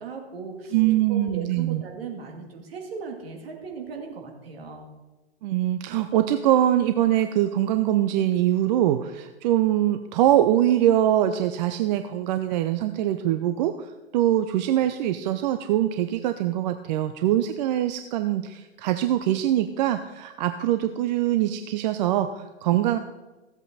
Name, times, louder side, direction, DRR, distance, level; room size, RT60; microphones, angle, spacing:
voice 1, 0.0-0.8 1.1-4.9, right 5 dB, 65° right, 2 dB, 2.3 m, -37 dB
voice 2, 0.7-1.8 5.4-23.0, right 12 dB, 45° right, 9 dB, 0.6 m, -23 dB
14.5 x 8.0 x 4.2 m, 1.1 s
figure-of-eight pair, 100°, 32 cm